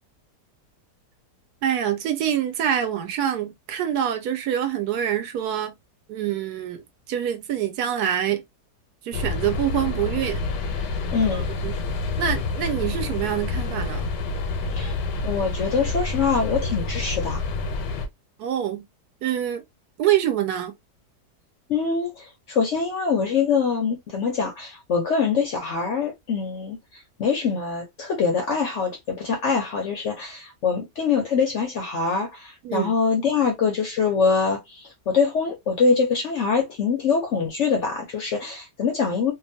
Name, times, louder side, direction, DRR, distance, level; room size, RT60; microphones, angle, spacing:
voice 1, 1.6-5.8 6.1-6.8 7.1-8.4 9.0-10.5 11.6-11.8 12.2-14.1 18.4-18.8 19.2-19.6 20.0-20.7 32.6-32.9, right 10 dB, 75° right, 1.1 m, -25 dB
sound 1, 9.1-18.1, left 3 dB, 90° left, 1.2 m, -28 dB
voice 2, 11.1-11.5 14.7-14.9 15.2-17.4 21.7-26.8 27.2-39.3, left 5 dB, 65° left, 0.7 m, -24 dB
2.8 x 2.3 x 2.5 m
omnidirectional pair, 1.8 m